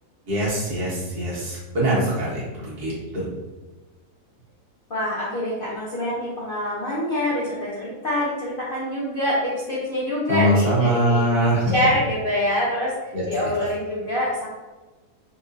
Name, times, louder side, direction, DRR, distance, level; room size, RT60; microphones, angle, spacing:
voice 1, 0.3-3.3 10.3-11.7 13.1-13.5, right 1 dB, 65° right, -7 dB, 1.8 m, -23 dB
voice 2, 4.9-11.2 11.7-14.5, left 1 dB, 55° left, -7 dB, 0.6 m, -25 dB
4.6 x 2.4 x 2.6 m, 1.2 s
omnidirectional pair, 1.8 m